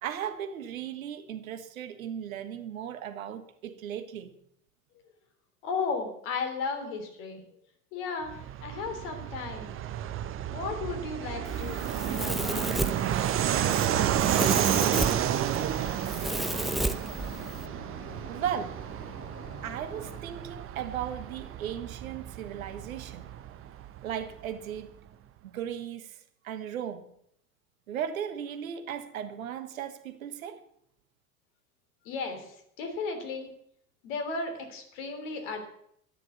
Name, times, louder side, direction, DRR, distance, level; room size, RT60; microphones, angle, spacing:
voice 1, 0.0-4.3 18.3-19.1 19.6-23.2 24.0-24.9 25.4-26.2 26.4-27.1 27.9-30.6, right 9 dB, 65° right, 1.3 m, -36 dB
voice 2, 5.6-7.4 7.9-8.3 8.6-9.7 10.5-12.7 32.0-32.5 32.8-33.5 34.0-35.6, left 4 dB, 55° left, 3.4 m, -34 dB
Fixed-wing aircraft airplane, 8.3-24.5, right 11 dB, 30° right, 0.8 m, -31 dB
sound 1, 10.8-20.2, left 2 dB, 85° left, 2.2 m, -48 dB
Domestic sounds home sounds, 11.4-17.7, right 1 dB, ahead, 0.6 m, -34 dB
13.0 x 10.5 x 7.0 m
figure-of-eight pair, 75°, 45 cm